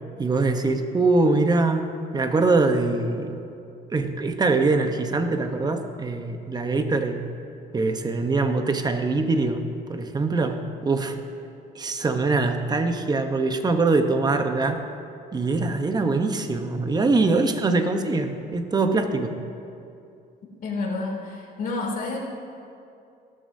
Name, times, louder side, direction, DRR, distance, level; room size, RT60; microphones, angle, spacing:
voice 1, 0.2-3.4 3.9-7.3 7.7-9.6 9.9-11.2 11.7-14.9 15.3-19.4, right 3 dB, 25° right, 7 dB, 0.9 m, -23 dB
voice 2, 20.6-22.2, left 3 dB, 55° left, -2 dB, 2.7 m, -29 dB
17.5 x 13.0 x 2.7 m, 2.5 s
cardioid pair, 110°, 17 cm